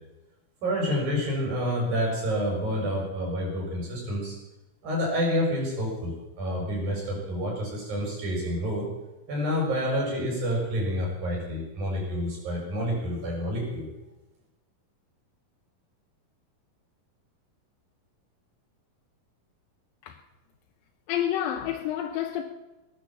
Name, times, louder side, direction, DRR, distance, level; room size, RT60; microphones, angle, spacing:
voice 1, 0.6-4.4 4.8-8.9 9.3-13.9, equal, 80° right, 7.3 m, -28 dB
voice 2, 21.1-22.4, left 11 dB, 85° left, 2.7 m, -29 dB
19.0 x 10.5 x 7.3 m
omnidirectional pair, 4.1 m